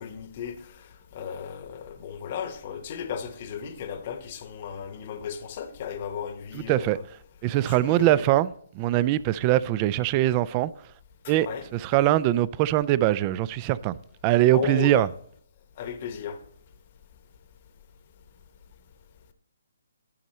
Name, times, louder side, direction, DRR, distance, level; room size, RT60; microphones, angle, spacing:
voice 1, 0.0-7.0 7.7-8.2 11.4-11.7 14.5-15.0 15.8-16.4, left 7 dB, 40° left, 0.9 m, -35 dB
voice 2, 6.5-7.0 7.4-10.9 11.3-14.0 14.2-15.1, right 14 dB, 30° right, 0.3 m, -22 dB
11.5 x 5.4 x 4.2 m
hypercardioid pair, 145°, 0 cm